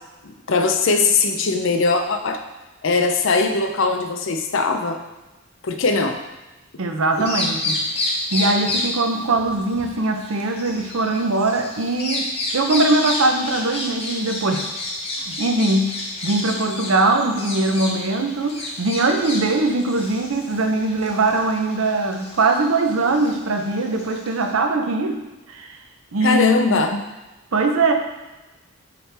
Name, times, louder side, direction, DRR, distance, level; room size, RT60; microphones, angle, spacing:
voice 1, 0.2-2.4 2.8-5.0 5.6-6.2 7.2-7.3 26.2-27.0, left 3 dB, 60° left, 6 dB, 0.5 m, -20 dB
voice 2, 6.8-7.8 8.3-12.3 12.5-14.7 15.2-15.9 16.2-25.2 25.5-25.7 26.1-26.8 27.5-27.9, right 2 dB, 75° right, 4 dB, 0.7 m, -21 dB
Bird vocalization bird call bird song, 7.1-24.5, left 2 dB, 30° left, 0.8 m, -30 dB
8.6 x 3.2 x 3.4 m, 1.1 s
head